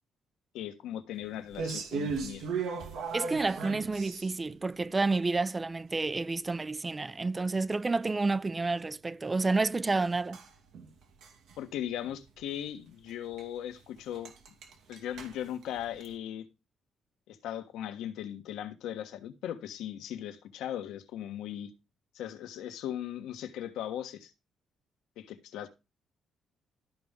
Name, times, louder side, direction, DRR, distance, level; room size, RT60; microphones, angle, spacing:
voice 1, 0.5-2.4 11.6-14.3 14.9-16.5 17.3-21.7 22.1-24.3 25.2-25.7, left 11 dB, 90° left, 1.3 m, -38 dB
sound 1, 1.5-4.5 10.3-11.6 11.9-12.1 12.4-12.6 13.1-13.2 13.4-13.5 13.8-13.9 14.1-16.1, right 5 dB, 80° right, 2.3 m, -37 dB
voice 2, 3.1-10.4, right 3 dB, 25° right, 0.4 m, -30 dB
13.0 x 5.3 x 3.6 m
cardioid pair, 90°, 0 cm